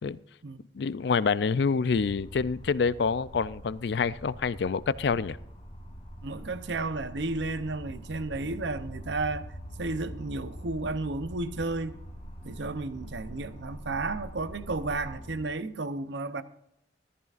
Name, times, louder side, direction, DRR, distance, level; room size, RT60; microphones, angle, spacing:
voice 1, 0.7-5.4, left 5 dB, 65° left, 0.4 m, -27 dB
sound 1, 1.9-15.5, equal, 35° left, 1.5 m, -44 dB
voice 2, 6.2-9.4 9.8-12.0 12.4-16.4, right 3 dB, 70° right, 0.7 m, -33 dB
14.5 x 14.0 x 2.5 m
head